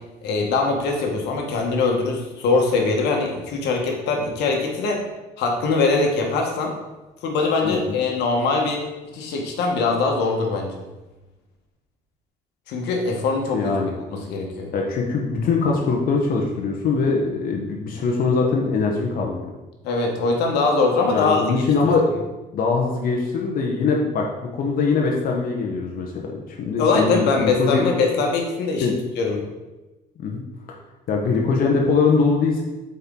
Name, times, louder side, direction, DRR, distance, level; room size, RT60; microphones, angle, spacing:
voice 1, 0.2-5.0 5.4-6.7 7.2-8.8 9.1-10.8 12.7-13.7 14.1-14.7 19.8-21.4 26.8-28.9 29.2-29.4, left 3 dB, 85° left, 1 dB, 1.3 m, -22 dB
voice 2, 7.6-8.0 13.5-13.9 14.7-19.4 21.1-22.1 22.5-27.9 28.8-28.9 30.2-30.4 31.1-32.6, left 4 dB, 60° left, 0 dB, 1.0 m, -22 dB
7.6 x 4.4 x 3.7 m, 1.1 s
cardioid pair, 110°, 17 cm